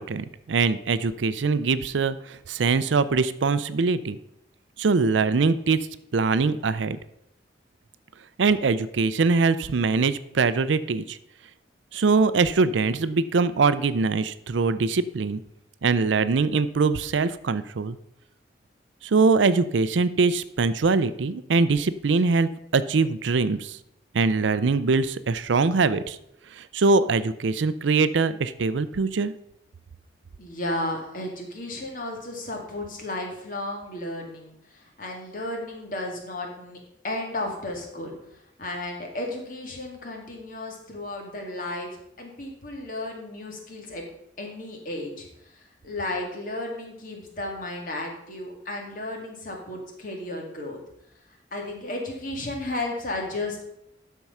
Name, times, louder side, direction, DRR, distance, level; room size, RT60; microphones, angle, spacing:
voice 1, 0.0-4.2 4.8-5.8 6.1-7.0 8.4-11.2 11.9-15.4 15.8-18.0 19.0-23.8 24.1-26.2 26.5-29.3, right 4 dB, 85° right, 14 dB, 0.5 m, -23 dB
voice 2, 30.4-41.9 42.2-44.1 44.4-50.8 51.3-53.7, left 1 dB, 45° left, 1 dB, 2.0 m, -34 dB
12.0 x 4.6 x 5.5 m, 0.78 s
head